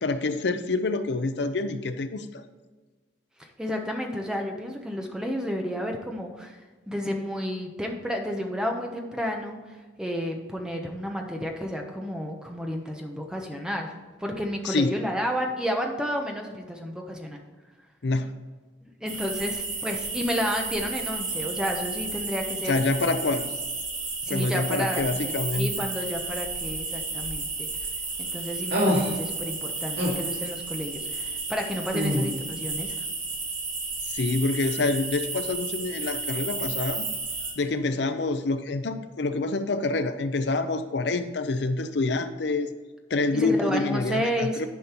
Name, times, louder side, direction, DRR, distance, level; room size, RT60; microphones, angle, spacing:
voice 1, 0.0-2.4 14.6-15.0 18.0-18.3 22.7-23.5 24.3-25.9 34.1-37.0 37.6-42.7 43.1-44.7, left 3 dB, 65° left, 10 dB, 0.5 m, -27 dB
voice 2, 3.4-6.6 6.9-9.6 10.0-13.9 14.2-17.4 18.8-22.8 23.2-23.3 24.2-27.7 28.2-33.0 43.3-44.6, equal, 5° right, 2 dB, 1.0 m, -31 dB
sound 1, 19.1-37.5, right 3 dB, 45° right, 3.0 m, -32 dB
sound 2, 28.7-29.1 30.0-30.2 31.9-32.3, equal, 65° right, 2.3 m, -24 dB
10.5 x 5.3 x 4.5 m, 1.3 s
head